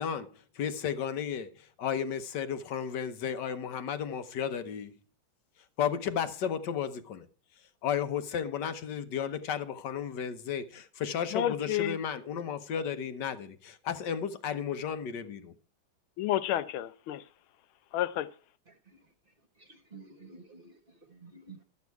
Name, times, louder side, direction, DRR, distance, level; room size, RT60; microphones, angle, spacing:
voice 1, 0.0-4.9 5.8-7.3 7.8-15.5, left 8 dB, 60° left, 1.4 m, -33 dB
voice 2, 11.3-12.0 16.2-17.2 17.9-18.3, left 12 dB, 80° left, 1.5 m, -30 dB
voice 3, 18.7-19.0 19.6-21.6, right 3 dB, 30° right, 1.2 m, -52 dB
12.0 x 8.2 x 4.6 m
omnidirectional pair, 2.3 m